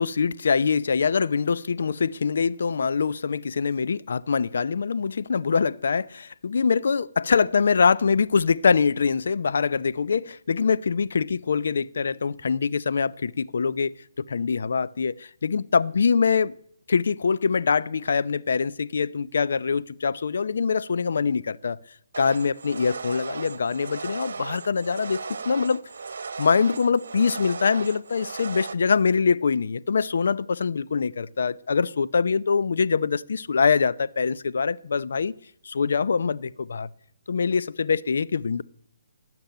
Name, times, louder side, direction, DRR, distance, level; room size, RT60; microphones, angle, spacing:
voice 1, 0.0-13.9 14.3-15.1 15.4-16.5 16.9-21.8 22.2-25.2 25.4-25.8 26.4-35.3 35.6-36.9 37.3-38.6, left 5 dB, 70° left, 0.7 m, -24 dB
sound 1, 22.1-28.7, right 5 dB, 70° right, 1.3 m, -36 dB
18.0 x 7.1 x 9.2 m
hypercardioid pair, 155°, 0 cm